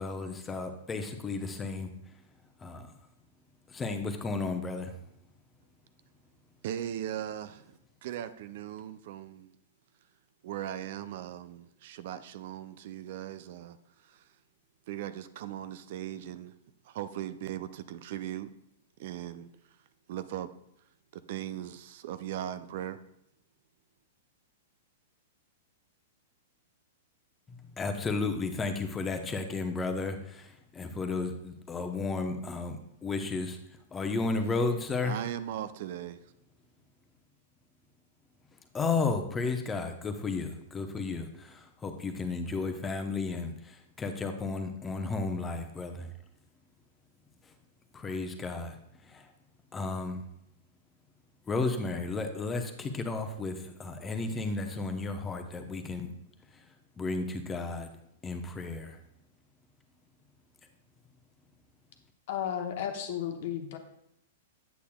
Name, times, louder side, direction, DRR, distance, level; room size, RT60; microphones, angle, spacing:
voice 1, 0.0-1.9 2.6-2.9 3.7-5.0 27.5-33.6 33.9-35.2 38.7-46.1 47.9-49.3 49.7-50.2 51.5-56.1 56.5-56.6 57.0-57.9 58.2-59.0, left 3 dB, 15° left, 6 dB, 0.8 m, -33 dB
voice 2, 6.6-9.5 10.4-13.8 14.0-14.3 14.9-16.5 16.8-18.5 19.0-19.5 20.1-20.5 21.1-23.0 35.0-36.2, right 11 dB, 55° right, 13 dB, 0.4 m, -38 dB
voice 3, 62.3-63.8, left 9 dB, 55° left, 6 dB, 0.9 m, -33 dB
8.4 x 8.1 x 2.3 m, 0.78 s
hypercardioid pair, 110°, 0 cm